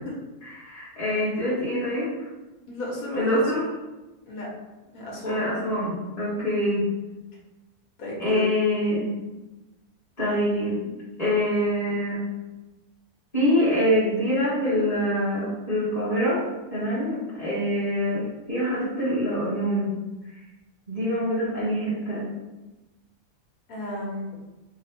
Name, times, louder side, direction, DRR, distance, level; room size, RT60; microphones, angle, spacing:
voice 1, 0.4-2.1 3.1-3.6 5.2-6.9 8.2-9.1 10.2-10.8 11.2-12.2 13.3-16.4 16.7-20.0 20.9-22.3, equal, 25° left, -9 dB, 1.4 m, -25 dB
voice 2, 2.6-3.7 4.2-4.5 4.9-5.5 8.0-8.5 17.0-17.1 23.7-24.3, left 1 dB, 65° left, -3 dB, 1.4 m, -33 dB
3.9 x 2.0 x 4.3 m, 1.1 s
omnidirectional pair, 1.6 m